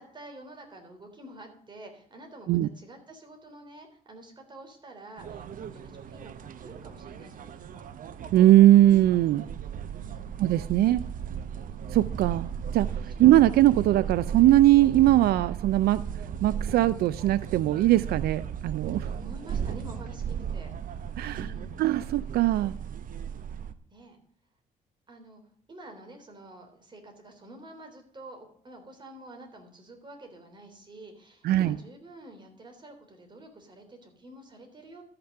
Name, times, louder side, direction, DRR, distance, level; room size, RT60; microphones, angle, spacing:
voice 1, 0.0-7.9 10.0-10.4 13.0-13.3 18.8-20.7 21.3-21.7 23.9-24.2 25.1-25.4 25.7-35.0, right 1 dB, 30° right, 3 dB, 3.4 m, -48 dB
sound 1, 5.2-23.7, right 8 dB, 60° right, 0.8 m, -36 dB
voice 2, 8.3-9.5 10.4-11.1 11.9-12.5 12.7-16.0 16.4-19.1 21.2-21.4 21.8-22.7 31.4-31.8, right 14 dB, 85° right, 17 dB, 0.4 m, -20 dB
13.0 x 5.9 x 6.5 m, 0.64 s
cardioid pair, 105°, 16 cm